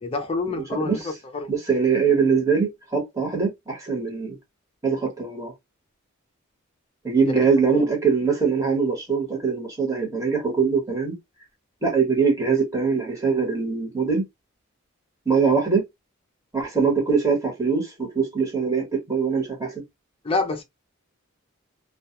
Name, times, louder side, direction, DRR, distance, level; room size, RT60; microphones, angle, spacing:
voice 1, 0.0-1.5 7.4-7.5 20.2-20.6, left 3 dB, 25° left, 0.4 m, -27 dB
voice 2, 0.6-1.1 1.5-4.3 4.8-5.5 7.0-11.1 11.8-14.2 15.3-15.8 16.5-19.8, right 5 dB, 15° right, 1.0 m, -22 dB
2.3 x 2.2 x 2.7 m
head